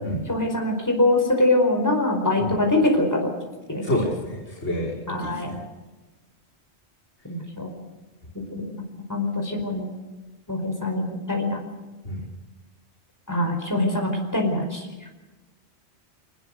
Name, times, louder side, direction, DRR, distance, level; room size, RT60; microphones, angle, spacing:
voice 1, 0.3-3.3 3.7-3.9 5.1-5.5 7.2-7.7 8.5-8.7 9.1-9.9 10.5-11.6 13.3-14.9, left 2 dB, 15° left, 2 dB, 4.8 m, -23 dB
voice 2, 3.8-4.9 5.2-5.6 12.0-12.2, left 1 dB, 75° left, -6 dB, 5.4 m, -28 dB
25.0 x 20.0 x 6.7 m, 1.2 s
omnidirectional pair, 1.2 m